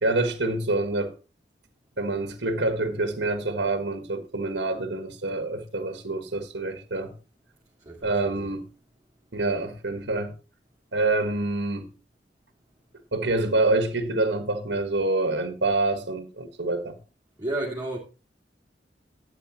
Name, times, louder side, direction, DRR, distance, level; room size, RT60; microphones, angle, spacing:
voice 1, 0.0-1.1 2.0-7.1 8.0-8.7 9.3-10.3 10.9-11.9 13.1-17.0, right 2 dB, 75° right, 1.6 m, -26 dB
voice 2, 7.8-8.5 17.4-18.0, right 1 dB, 20° right, 2.6 m, -32 dB
12.5 x 8.6 x 3.0 m
head